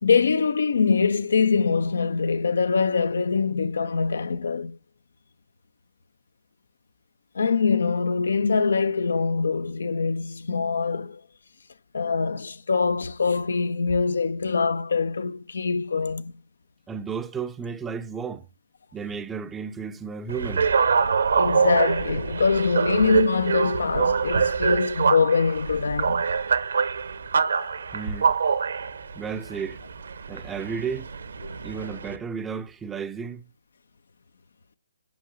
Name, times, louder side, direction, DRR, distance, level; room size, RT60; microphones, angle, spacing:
voice 1, 0.0-4.8 7.3-11.2 11.9-16.3 21.3-26.3 31.4-31.6, left 5 dB, 60° left, 0.8 m, -23 dB
voice 2, 16.9-18.5 18.9-20.7 27.9-28.3 29.2-29.8 30.3-31.1 31.6-33.5, right 6 dB, 10° right, 0.7 m, -33 dB
sound 1, 20.3-32.2, right 5 dB, 60° right, 1.2 m, -25 dB
9.5 x 5.6 x 8.1 m
figure-of-eight pair, 135°, 0 cm